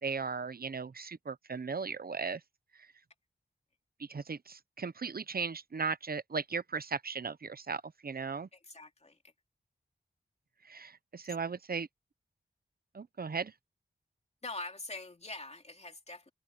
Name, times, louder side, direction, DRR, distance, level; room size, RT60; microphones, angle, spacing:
voice 1, 0.0-2.4 4.0-8.5 10.6-11.9 12.9-13.5, right 5 dB, 55° right, 0.9 m, -37 dB
voice 2, 8.5-9.2 11.2-11.3 14.4-16.3, left 2 dB, 35° left, 2.7 m, -44 dB
cardioid pair, 55°, 19 cm